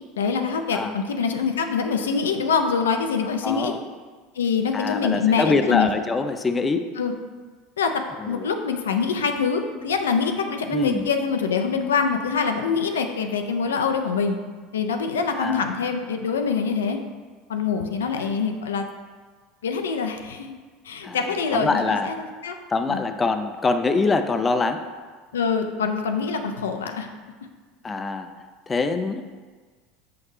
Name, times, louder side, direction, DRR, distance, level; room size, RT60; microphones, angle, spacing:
voice 1, 0.2-3.7 4.4-5.9 7.0-7.1 7.8-14.4 14.7-17.0 17.5-18.9 19.6-20.5 20.8-22.6 22.9-23.0 25.3-27.1, left 5 dB, 90° left, 5 dB, 0.4 m, -24 dB
voice 2, 3.4-3.8 4.7-6.9 8.2-8.5 10.7-11.1 15.3-15.7 18.1-18.4 21.0-22.1 22.7-24.9 27.8-28.3 28.7-29.3, left 4 dB, 25° left, 8 dB, 0.4 m, -24 dB
5.8 x 5.2 x 3.2 m, 1.5 s
hypercardioid pair, 85°, 0 cm